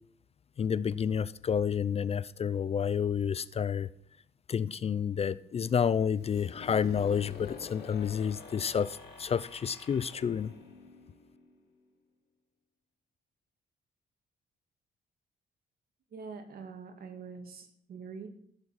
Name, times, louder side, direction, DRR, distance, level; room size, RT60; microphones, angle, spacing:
voice 1, 0.6-3.9 4.5-10.5, left 7 dB, 35° left, 0.4 m, -30 dB
sound 1, 6.2-11.9, left 5 dB, 90° left, 4.8 m, -48 dB
voice 2, 16.1-18.3, right 5 dB, 60° right, 2.4 m, -44 dB
15.5 x 6.8 x 5.9 m
cardioid pair, 105°, 17 cm